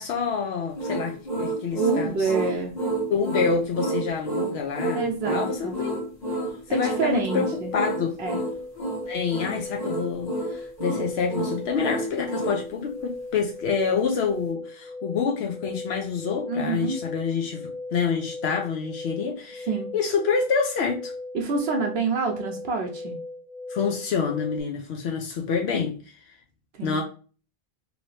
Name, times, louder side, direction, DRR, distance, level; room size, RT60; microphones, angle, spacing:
voice 1, 0.0-2.3 3.1-6.0 6.7-7.5 7.7-8.1 9.1-19.7 19.9-21.1 23.7-26.0 26.8-27.0, left 5 dB, 80° left, 1 dB, 0.8 m, -27 dB
sound 1, 0.8-12.6, right 2 dB, 45° left, 1.2 m, -29 dB
voice 2, 1.7-2.7 4.9-5.7 6.7-7.7 8.2-8.4 16.5-17.0 19.7-19.9 21.3-23.1 26.8-27.0, right 4 dB, 75° right, 2 dB, 0.8 m, -27 dB
sound 2, 6.7-24.6, left 2 dB, 10° left, 0.8 m, -38 dB
2.9 x 2.7 x 3.1 m, 0.38 s
omnidirectional pair, 1.1 m